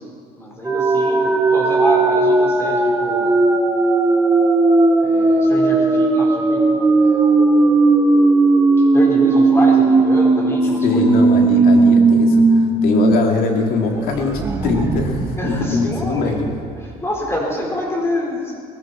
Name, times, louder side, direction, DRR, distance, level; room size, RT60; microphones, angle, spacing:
voice 1, 0.0-3.4 5.0-7.8 8.8-11.8 15.4-16.4 16.7-18.7, left 1 dB, 15° left, -1 dB, 4.4 m, -27 dB
sound 1, 0.6-13.1 13.5-13.6 13.9-16.6, right 3 dB, 15° right, 1.7 m, -16 dB
voice 2, 10.8-16.5, left 4 dB, 65° left, 2 dB, 2.4 m, -22 dB
19.5 x 15.0 x 4.4 m, 2.2 s
cardioid pair, 110°, 16 cm